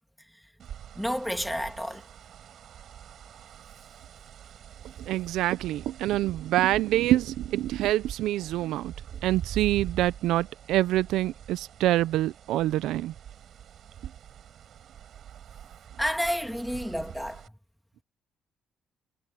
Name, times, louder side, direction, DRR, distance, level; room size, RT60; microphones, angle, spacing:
sound 1, 0.6-17.5, right 9 dB, 65° right, 5.2 m, -44 dB
voice 1, 0.9-2.1 16.0-17.6, equal, ahead, 2.8 m, -30 dB
voice 2, 5.0-8.9 9.2-13.1, right 15 dB, 90° right, 0.4 m, -26 dB
cardioid pair, 90°, 0 cm